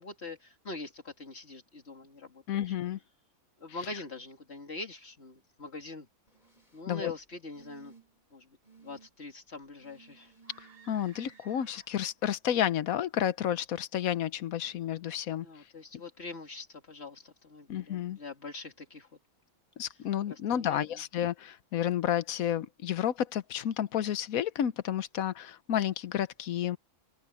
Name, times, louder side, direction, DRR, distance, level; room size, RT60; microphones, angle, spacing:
voice 1, 0.0-2.7 3.6-6.1 6.7-7.9 8.3-8.5 8.8-10.3 15.4-19.1 20.3-21.0, left 3 dB, 45° left, 2.7 m, -43 dB
voice 2, 2.5-3.0 3.9-4.0 6.9-7.1 10.9-15.5 17.7-18.2 19.8-26.8, left 10 dB, 70° left, 1.2 m, -31 dB
sound 1, 6.3-6.8 7.5-8.2 8.6-9.1 9.8-11.4 12.6-12.7, right 5 dB, 30° left, 3.8 m, -58 dB
sound 2, 10.4-12.2, right 4 dB, 80° right, 6.3 m, -58 dB
omnidirectional pair, 1.6 m